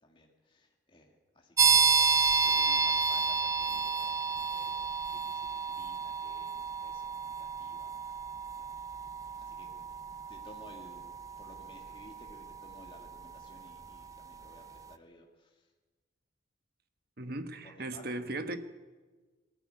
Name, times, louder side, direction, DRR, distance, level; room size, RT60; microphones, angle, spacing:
voice 1, 0.0-1.9 2.4-4.7 5.1-8.3 8.5-8.7 9.4-9.9 10.3-15.7 17.6-18.1, left 1 dB, 25° left, 2.2 m, -56 dB
sound 1, 1.6-14.1, right 5 dB, 15° right, 0.5 m, -31 dB
voice 2, 17.2-18.6, right 2 dB, 50° right, 1.3 m, -37 dB
20.5 x 14.0 x 9.6 m
head